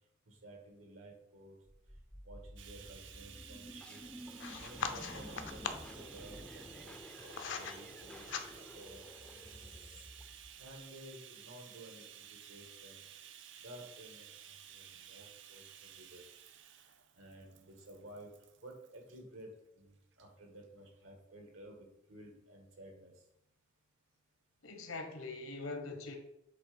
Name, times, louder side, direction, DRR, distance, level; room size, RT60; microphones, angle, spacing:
voice 1, 0.2-1.6 2.2-4.0 4.5-9.8 10.6-13.0 13.6-16.2 16.7-16.8 17.2-18.3 18.6-19.5 19.8-23.1, right 1 dB, 75° right, 1.7 m, -54 dB
sound 1, 1.7-10.8, equal, 5° left, 0.5 m, -51 dB
Bathtub (filling or washing), 2.6-19.2 20.1-20.3 20.6-20.7, right 9 dB, 60° right, 0.5 m, -54 dB
sound 2, 4.4-6.0 6.8-7.8 8.1-8.8, left 6 dB, 60° left, 0.6 m, -41 dB
voice 2, 24.6-26.2, left 3 dB, 75° left, 1.2 m, -42 dB
7.8 x 3.5 x 5.1 m
head